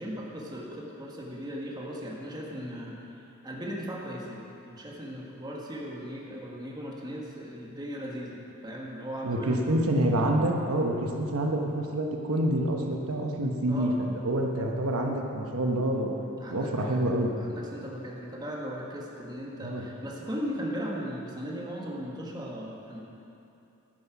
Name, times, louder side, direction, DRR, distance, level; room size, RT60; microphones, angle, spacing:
voice 1, 0.0-3.0 3.4-9.7 13.7-13.9 16.4-17.0 17.4-23.0, equal, 20° right, -3 dB, 1.4 m, -37 dB
voice 2, 9.2-16.1 16.5-17.3 19.6-19.8, right 1 dB, 80° right, 1 dB, 1.1 m, -27 dB
9.7 x 9.5 x 5.9 m, 2.8 s
head